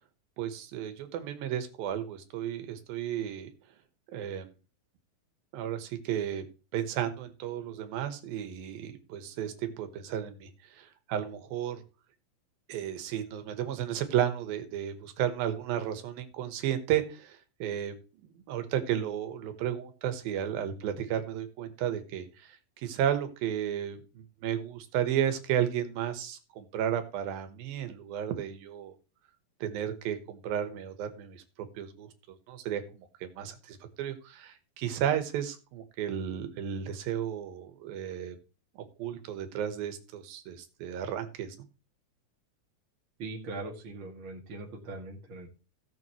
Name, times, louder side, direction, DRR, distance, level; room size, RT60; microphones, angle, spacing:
voice 1, 0.4-3.5 4.1-4.5 5.5-6.4 6.7-11.8 12.7-17.9 18.2-28.9 29.6-31.4 31.8-32.1 32.5-38.4 38.8-41.6, right 10 dB, 85° right, 9 dB, 3.0 m, -33 dB
voice 2, 43.2-45.5, right 2 dB, 40° right, -1 dB, 2.5 m, -40 dB
17.0 x 7.1 x 3.1 m, 0.32 s
omnidirectional pair, 4.1 m